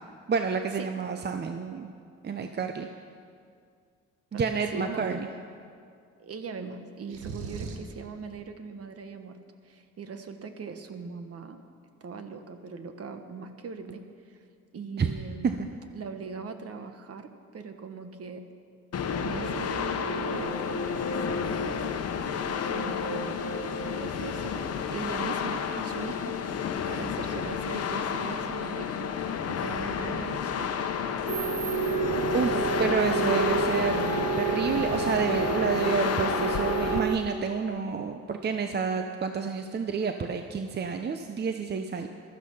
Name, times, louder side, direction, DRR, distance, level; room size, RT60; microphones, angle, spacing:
voice 1, 0.3-1.9 2.2-2.9 4.3-5.3 15.0-15.1 32.3-42.1, right 5 dB, 35° right, 6 dB, 0.8 m, -29 dB
voice 2, 4.7-5.2 6.2-9.4 9.6-11.6 12.0-14.4 14.7-15.6 15.9-18.4 19.2-21.9 22.5-29.1 29.5-30.7 42.0-42.1, right 5 dB, 50° right, 7 dB, 1.4 m, -40 dB
sound 1, 7.1-8.0, right 4 dB, 90° right, 1.5 m, -38 dB
sound 2, 18.9-37.0, left 6 dB, 55° left, 1.0 m, -30 dB
sound 3, 31.3-37.2, right 6 dB, 70° right, 1.1 m, -30 dB
15.0 x 12.5 x 5.6 m, 2.2 s
cardioid pair, 90°, 30 cm